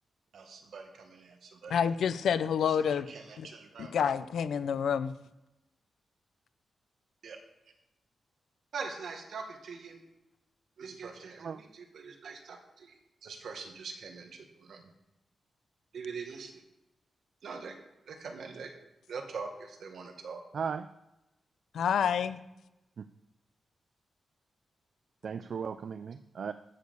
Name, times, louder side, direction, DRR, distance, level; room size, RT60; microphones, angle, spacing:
voice 1, 0.3-1.7 2.7-3.9 7.2-7.4 8.7-10.0 10.8-12.9 13.2-14.9 15.9-16.6 17.4-17.8 18.1-18.7 19.1-20.4, right 5 dB, 70° right, 4 dB, 1.8 m, -43 dB
voice 2, 1.7-3.1 3.4-3.5 3.8-5.1 21.7-22.4, left 7 dB, 85° left, 13 dB, 0.6 m, -28 dB
voice 3, 20.5-20.9 23.0-23.1 25.2-26.5, right 6 dB, 55° right, 12 dB, 0.4 m, -36 dB
11.5 x 6.4 x 7.0 m, 0.95 s
wide cardioid pair, 150°, 0 cm